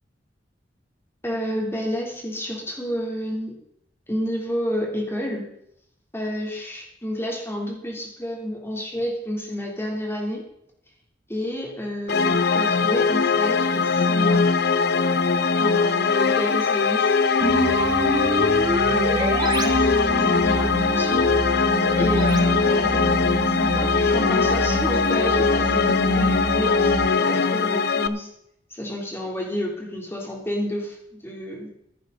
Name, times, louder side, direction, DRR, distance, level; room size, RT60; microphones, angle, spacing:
voice 1, 1.2-3.5 4.1-5.5 6.1-10.4 11.3-14.4 15.6-17.1 18.9-19.8 20.2-21.3 22.0-28.3 28.7-31.0 31.2-31.7, equal, 15° left, -1 dB, 3.3 m, -30 dB
sound 1, 12.1-28.1, left 4 dB, 60° left, 0.7 m, -21 dB
sound 2, 17.4-27.1, right 2 dB, 25° right, 1.0 m, -27 dB
15.5 x 10.5 x 4.0 m, 0.74 s
head